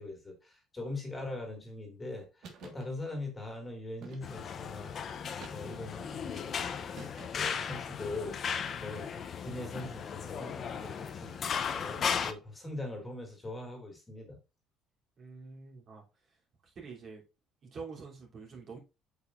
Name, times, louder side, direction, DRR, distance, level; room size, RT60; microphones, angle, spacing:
voice 1, 0.0-5.2 5.5-14.4, left 2 dB, 15° left, 2.1 m, -42 dB
sound 1, 2.4-2.9 4.0-4.6 5.4-6.0 6.9-7.6, right 5 dB, 65° right, 1.5 m, -50 dB
sound 2, 4.2-12.3, left 7 dB, 40° left, 0.7 m, -36 dB
voice 2, 15.2-16.0 16.6-17.2 17.6-18.8, right 4 dB, 50° right, 3.0 m, -46 dB
8.0 x 5.4 x 2.5 m
cardioid pair, 130°, 0 cm